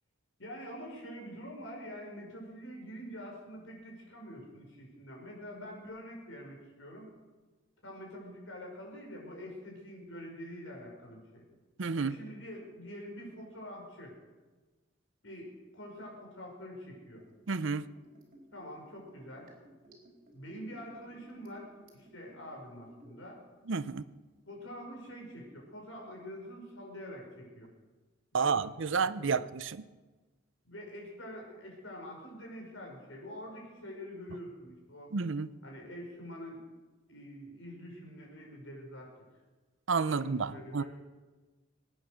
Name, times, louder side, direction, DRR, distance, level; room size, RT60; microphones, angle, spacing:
voice 1, 0.4-7.1 7.8-11.4 11.9-14.2 15.2-17.3 18.5-19.5 20.3-23.4 24.5-27.7 28.3-29.4 30.6-35.2 35.6-36.6 37.1-39.1 40.1-40.9, equal, 80° left, 0 dB, 5.3 m, -46 dB
voice 2, 11.8-12.2 17.5-17.8 23.7-24.1 28.3-29.8 35.1-35.5 39.9-40.8, right 5 dB, 75° right, 15 dB, 0.6 m, -30 dB
Liquid, 17.2-23.3 23.6-23.7, right 1 dB, 50° right, 4.5 m, -58 dB
23.5 x 9.4 x 6.4 m, 1.3 s
head